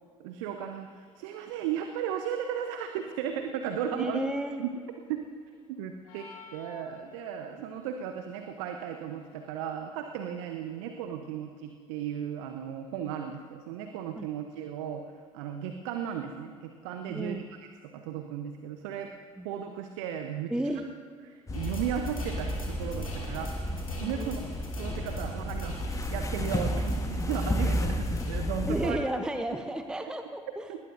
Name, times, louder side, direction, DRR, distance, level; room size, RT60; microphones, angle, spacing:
voice 1, 0.2-4.2 4.6-4.8 5.1-5.2 5.7-15.0 15.3-17.4 17.9-19.1 19.4-20.5 21.2-23.7 24.0-24.4 24.8-25.8 26.1-29.0 30.7-30.8, right 9 dB, 65° right, 6 dB, 0.9 m, -35 dB
voice 2, 3.9-4.6 14.2-14.3 17.1-17.4 19.4-19.5 20.5-20.9 24.0-24.3 28.7-30.7, right 1 dB, 5° right, 7 dB, 0.8 m, -33 dB
sound 1, 6.0-7.5, left 5 dB, 65° left, 2.1 m, -49 dB
sound 2, 21.5-28.4, left 1 dB, 85° left, 2.3 m, -47 dB
sound 3, 21.5-28.9, equal, 20° left, 1.4 m, -32 dB
19.5 x 19.0 x 2.6 m, 2.2 s
figure-of-eight pair, 60°, 17 cm